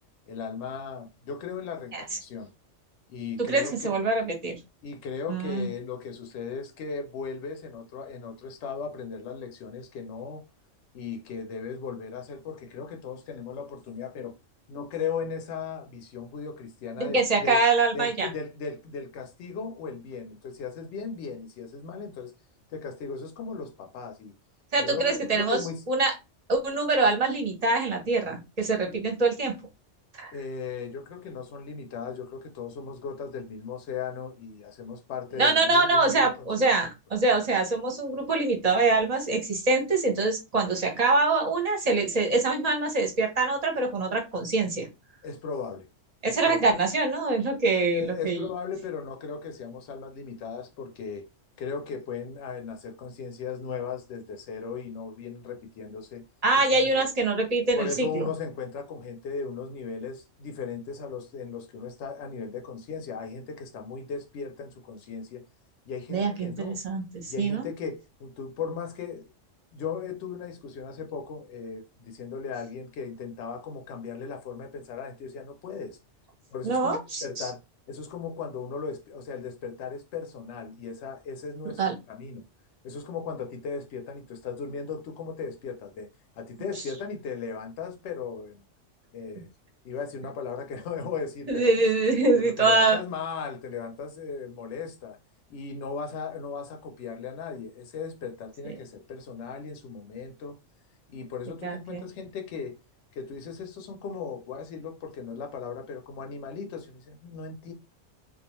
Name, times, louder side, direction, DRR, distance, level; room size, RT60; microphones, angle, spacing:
voice 1, 0.3-2.5 3.1-4.0 4.8-10.4 10.9-14.3 14.7-17.6 17.9-22.3 22.7-24.3 24.8-25.8 30.3-36.7 45.2-45.9 46.2-46.7 47.8-51.3 51.6-56.2 56.5-57.0 57.7-65.4 65.9-66.8 67.3-69.3 69.7-76.0 76.5-77.6 77.9-82.4 82.8-86.1 86.4-88.6 89.1-89.5 89.8-91.7 92.3-95.2 95.5-100.6 101.1-102.8 103.1-107.7, left 5 dB, 70° left, 0.9 m, -37 dB
voice 2, 3.5-4.6 5.3-5.7 17.0-18.3 24.7-25.6 25.9-26.1 26.5-29.5 30.2-30.3 35.4-44.9 46.2-48.5 56.4-58.3 66.1-67.7 76.6-77.5 81.8-81.9 91.5-93.0 101.6-102.0, right 3 dB, 40° right, 0.6 m, -24 dB
2.3 x 2.2 x 2.9 m
omnidirectional pair, 1.3 m